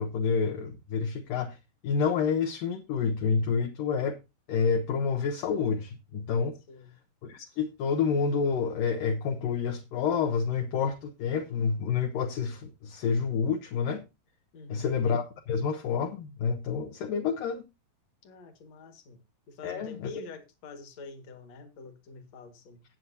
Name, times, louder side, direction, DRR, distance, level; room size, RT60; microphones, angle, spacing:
voice 1, 0.0-1.6 1.8-4.2 4.5-6.6 7.2-14.0 14.7-17.6 19.6-20.1, left 6 dB, 70° left, 2.4 m, -28 dB
voice 2, 14.5-15.0 18.2-19.2 19.5-22.8, left 3 dB, 50° left, 2.5 m, -46 dB
18.0 x 7.5 x 2.7 m
omnidirectional pair, 4.4 m